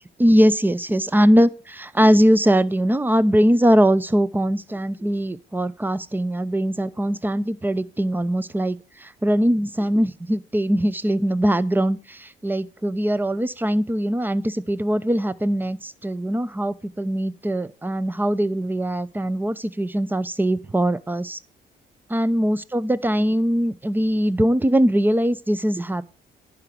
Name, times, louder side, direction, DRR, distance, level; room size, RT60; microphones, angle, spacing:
voice 1, 0.2-21.4 22.1-26.1, equal, 10° right, 0.6 m, -21 dB
10.5 x 5.0 x 6.7 m
cardioid pair, 90°, 20 cm